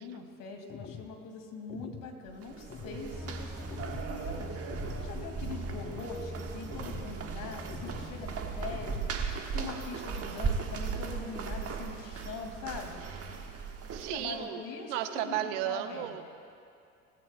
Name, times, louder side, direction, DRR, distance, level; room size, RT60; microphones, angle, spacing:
voice 1, 0.0-4.6 4.9-9.0 9.5-13.0 13.9-16.2, left 4 dB, 55° left, 3 dB, 2.2 m, -42 dB
sound 1, 0.7-1.1 1.7-2.1 2.7-3.1 3.7-4.1 4.7-5.1 5.7-6.1 6.7-7.1 7.7-8.1 8.7-9.1, left 7 dB, 30° left, 1.1 m, -45 dB
sound 2, 2.3-14.4, right 5 dB, 35° right, 1.4 m, -37 dB
sound 3, 3.1-9.0, equal, 5° right, 0.6 m, -44 dB
voice 2, 13.9-14.6 14.9-16.2, right 12 dB, 65° right, 9 dB, 1.0 m, -34 dB
19.5 x 15.5 x 2.2 m, 2.5 s
figure-of-eight pair, 65°, 40 cm